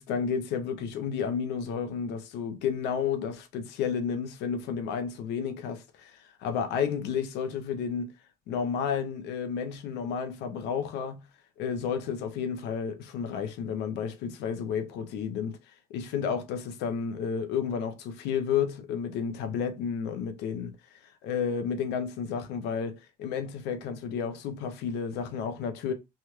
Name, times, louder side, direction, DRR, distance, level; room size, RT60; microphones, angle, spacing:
voice 1, 0.0-8.1 8.5-11.2 11.6-15.6 15.9-20.7 21.2-25.9, left 7 dB, 90° left, 0.6 m, -31 dB
3.3 x 2.2 x 3.0 m
cardioid pair, 110°, 17 cm